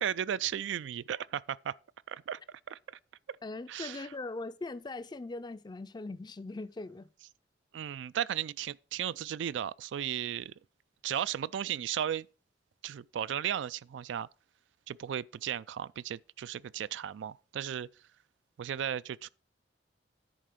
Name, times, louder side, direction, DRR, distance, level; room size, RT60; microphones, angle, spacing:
voice 1, 0.0-1.7 2.1-2.4 2.7-2.8 3.7-4.1 7.7-10.5 11.0-12.3 12.8-14.3 14.9-17.9 18.6-19.3, right 9 dB, 85° right, 0.3 m, -35 dB
voice 2, 3.4-7.1, left 2 dB, 25° left, 0.4 m, -40 dB
10.0 x 4.2 x 6.2 m
head